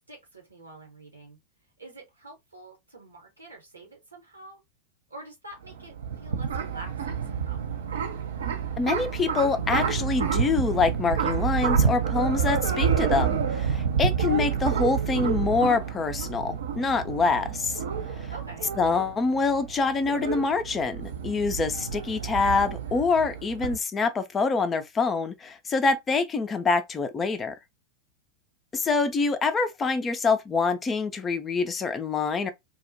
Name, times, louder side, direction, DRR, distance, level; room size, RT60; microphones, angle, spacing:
voice 1, 0.1-1.4 1.8-4.6 5.1-7.7 18.3-18.7, right 2 dB, 80° right, 1.1 m, -46 dB
sound 1, 5.6-23.7, right 7 dB, 65° right, 0.5 m, -28 dB
voice 2, 8.8-17.8 18.2-18.3 18.8-27.5 28.7-32.5, left 4 dB, 20° left, 0.4 m, -25 dB
2.3 x 2.1 x 2.8 m
figure-of-eight pair, 90°, 0 cm